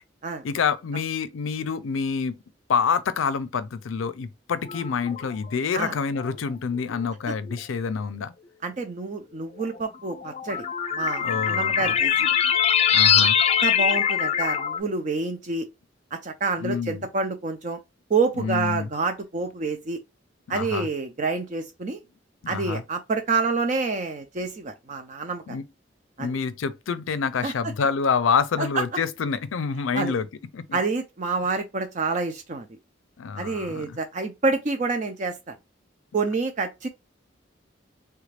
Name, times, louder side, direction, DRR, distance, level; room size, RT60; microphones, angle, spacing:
voice 1, 0.4-2.4 2.7-8.3 11.2-12.0 12.9-13.4 16.6-17.0 18.4-18.9 20.5-20.9 22.4-22.8 25.5-25.6 26.2-30.3 30.5-30.8 33.2-34.0, left 5 dB, 85° left, 0.4 m, -27 dB
sound 1, 4.7-5.3 6.2-6.3 7.5-7.6 9.7-14.8, left 8 dB, 30° left, 0.4 m, -22 dB
voice 2, 8.6-10.6 10.9-12.4 13.2-13.3 13.6-15.7 16.1-17.8 18.1-20.0 20.5-22.0 22.5-25.6 26.2-26.3 27.4-27.5 28.6-28.8 29.9-30.1 30.7-32.7 33.4-35.5 36.1-36.9, right 4 dB, 40° right, 0.5 m, -28 dB
3.3 x 2.4 x 3.3 m
head